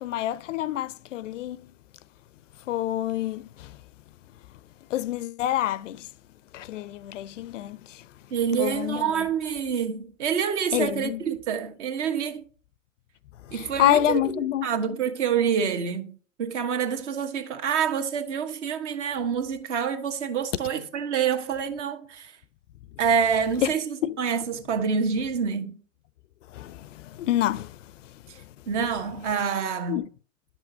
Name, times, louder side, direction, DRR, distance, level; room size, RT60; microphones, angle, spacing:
voice 1, 0.0-1.7 2.7-3.8 4.9-6.1 6.5-8.1 8.5-9.3 10.7-11.2 13.4-14.7 23.6-24.2 26.5-28.5 29.9-30.1, left 12 dB, 65° left, 0.5 m, -28 dB
voice 2, 8.3-12.4 13.5-22.4 23.0-25.8 28.3-30.0, right 7 dB, 60° right, 1.4 m, -27 dB
10.0 x 6.2 x 2.7 m
hypercardioid pair, 110°, 40 cm